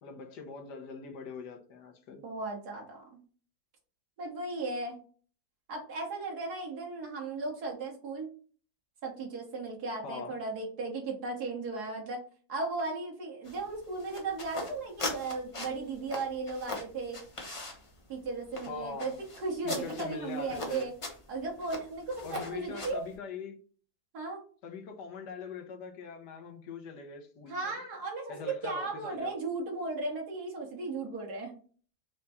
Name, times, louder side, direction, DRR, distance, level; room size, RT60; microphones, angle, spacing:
voice 1, 0.0-2.2 10.0-10.4 18.7-19.2 19.6-20.9 22.2-23.6 24.6-27.7 28.3-29.4, left 5 dB, 85° left, 1.4 m, -42 dB
voice 2, 2.2-3.2 4.2-5.0 5.7-8.3 9.0-12.2 12.5-17.2 18.1-19.1 19.4-20.9 21.3-23.0 24.1-24.4 27.5-28.4 28.6-31.5, right 3 dB, 70° right, 1.9 m, -36 dB
sound 1, 13.4-23.1, left 2 dB, 30° left, 0.7 m, -41 dB
4.8 x 2.2 x 4.1 m
omnidirectional pair, 1.8 m